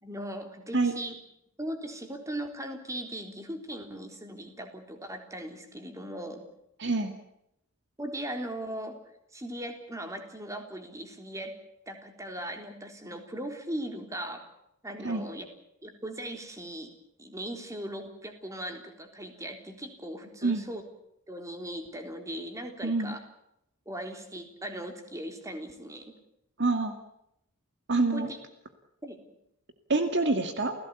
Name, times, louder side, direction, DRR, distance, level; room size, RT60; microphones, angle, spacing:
voice 1, 0.0-1.2 1.6-6.4 8.0-9.0 9.3-11.5 11.9-14.4 14.8-15.5 15.8-16.9 17.2-20.8 21.3-23.2 23.9-26.2 28.1-28.4 29.0-29.2, right 1 dB, 15° right, 5 dB, 3.7 m, -38 dB
voice 2, 6.8-7.1 15.0-15.3 20.4-20.7 22.8-23.2 26.6-26.9 27.9-28.3 29.9-30.7, right 3 dB, 50° right, 7 dB, 2.2 m, -26 dB
29.5 x 17.0 x 8.4 m, 0.78 s
head